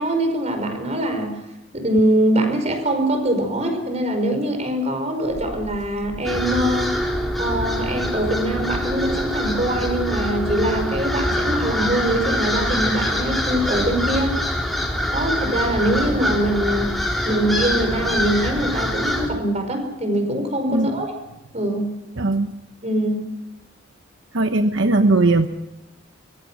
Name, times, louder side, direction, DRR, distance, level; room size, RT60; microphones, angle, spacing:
voice 1, 0.0-1.4 1.7-7.0 7.4-14.4 15.1-16.9 17.2-21.1 21.5-21.9 22.8-23.3, right 1 dB, 35° right, 7 dB, 5.1 m, -23 dB
sound 1, 5.2-10.4, equal, 55° left, 7.1 m, -39 dB
sound 2, 6.3-19.3, equal, ahead, 4.4 m, -24 dB
voice 2, 22.2-22.5 24.3-25.5, right 2 dB, 70° right, 7 dB, 1.1 m, -18 dB
24.5 x 22.5 x 6.2 m, 0.93 s
head